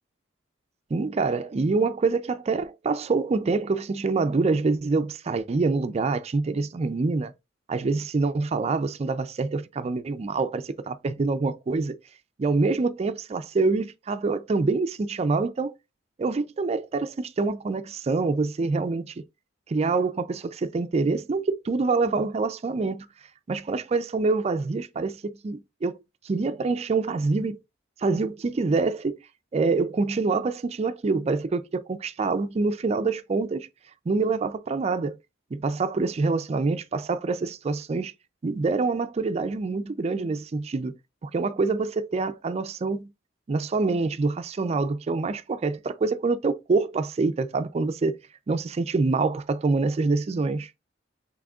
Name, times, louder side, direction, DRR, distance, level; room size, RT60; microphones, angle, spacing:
voice 1, 0.9-7.3 7.7-12.0 12.4-15.7 16.2-19.2 19.7-23.1 23.5-25.9 26.2-27.6 28.0-29.2 29.5-33.7 34.1-35.2 35.5-38.1 38.4-40.9 41.2-43.1 43.5-48.2 48.5-50.7, right 3 dB, 35° right, 0.3 m, -26 dB
6.0 x 3.4 x 2.3 m
head